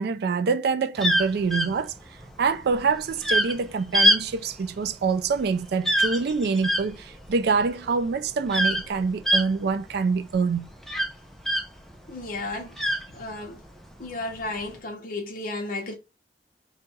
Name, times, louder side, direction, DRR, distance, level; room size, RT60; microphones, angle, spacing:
voice 1, 0.0-1.9 2.4-10.7, right 5 dB, 65° right, 0.4 m, -25 dB
sound 1, 1.0-11.9 12.3-13.7 14.4-14.7, equal, ahead, 0.4 m, -25 dB
voice 2, 12.1-13.6 14.0-15.9, left 2 dB, 50° left, 0.7 m, -34 dB
2.8 x 2.4 x 3.9 m
head